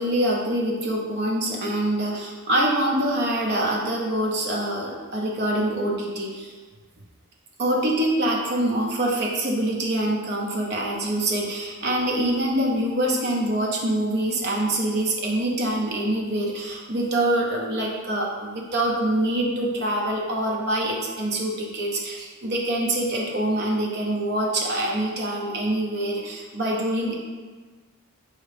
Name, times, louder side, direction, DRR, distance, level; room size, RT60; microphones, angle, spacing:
voice 1, 0.0-6.5 7.6-27.1, right 1 dB, 50° right, -2 dB, 0.7 m, -25 dB
4.6 x 3.0 x 3.4 m, 1.4 s
head